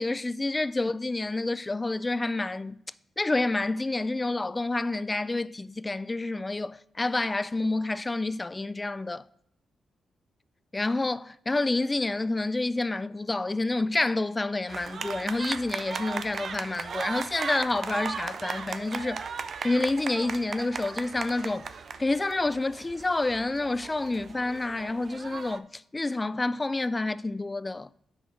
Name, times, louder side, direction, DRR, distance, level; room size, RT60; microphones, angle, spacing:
voice 1, 0.0-2.8 3.2-9.2 10.7-19.2 19.6-21.7 22.0-27.9, left 2 dB, 25° left, 0.3 m, -28 dB
sound 1, 14.7-25.6, right 6 dB, 60° right, 0.4 m, -37 dB
6.3 x 4.9 x 6.0 m
hypercardioid pair, 45°, 0 cm